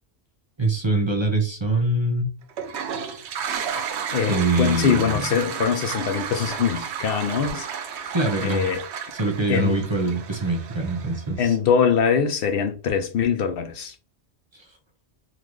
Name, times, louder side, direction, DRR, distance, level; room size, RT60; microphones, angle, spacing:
voice 1, 0.6-2.3 4.3-5.2 8.1-8.6 9.2-11.5, right 2 dB, 30° right, 0.7 m, -23 dB
Toilet flush, 2.5-11.4, right 7 dB, 85° right, 0.9 m, -32 dB
voice 2, 4.1-8.2 8.4-8.8 9.5-9.8 11.4-14.0, left 7 dB, 65° left, 0.7 m, -23 dB
3.9 x 2.5 x 3.1 m
omnidirectional pair, 1.1 m